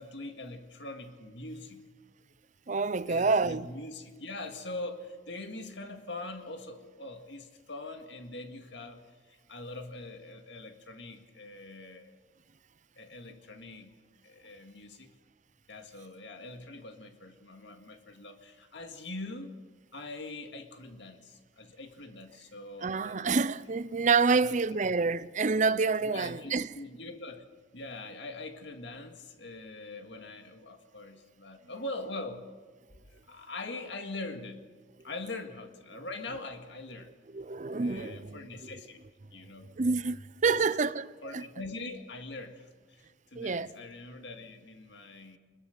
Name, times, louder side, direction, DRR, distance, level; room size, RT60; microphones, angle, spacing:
voice 1, 0.0-1.8 3.1-12.2 13.0-13.9 14.2-15.1 15.7-19.6 19.9-23.4 24.3-24.8 26.0-27.4 27.7-32.5 33.1-34.6 35.0-37.1 37.8-39.0 39.3-39.7 40.5-40.7 41.2-43.0 43.3-45.4, left 2 dB, 65° left, 2.1 m, -43 dB
voice 2, 2.7-3.7 22.8-26.7 37.3-38.7 39.8-41.1 41.3-41.4 43.3-43.7, right 4 dB, 40° right, 0.6 m, -28 dB
26.0 x 21.5 x 6.7 m
head